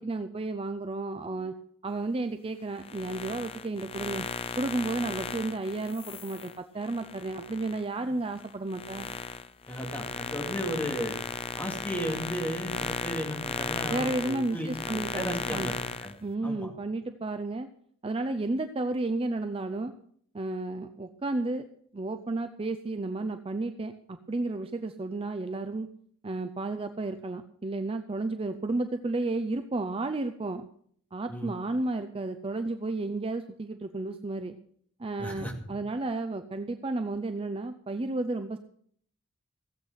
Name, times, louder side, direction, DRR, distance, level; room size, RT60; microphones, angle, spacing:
voice 1, 0.0-1.6 1.8-4.3 4.6-9.1 13.9-15.7 16.2-17.7 18.0-19.9 20.3-21.7 21.9-25.9 26.2-30.7 31.1-34.6 35.0-38.6, right 2 dB, 25° right, 8 dB, 0.5 m, -32 dB
sound 1, 2.7-7.8 8.3-16.1, left 5 dB, 25° left, 0.5 m, -36 dB
voice 2, 9.7-11.2 11.6-15.7 16.0-16.1 16.4-16.7 31.3-31.6 35.2-35.5, equal, 10° left, 1 dB, 2.2 m, -35 dB
16.0 x 8.1 x 5.7 m, 0.62 s
head